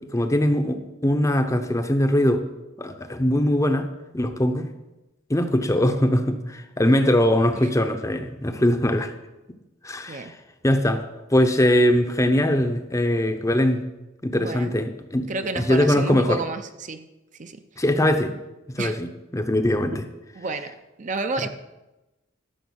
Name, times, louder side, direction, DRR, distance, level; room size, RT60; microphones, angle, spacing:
voice 1, 0.1-2.4 2.8-3.9 4.1-4.7 5.3-9.1 9.8-10.3 10.6-11.0 11.3-13.8 14.2-15.3 15.6-16.4 17.8-18.3 18.7-20.0, left 1 dB, 15° left, 7 dB, 0.7 m, -21 dB
voice 2, 14.3-14.7 15.3-17.0 17.4-17.6 18.8-18.9 20.3-21.5, right 3 dB, 40° right, 8 dB, 0.6 m, -30 dB
12.5 x 6.1 x 6.3 m, 1.0 s
head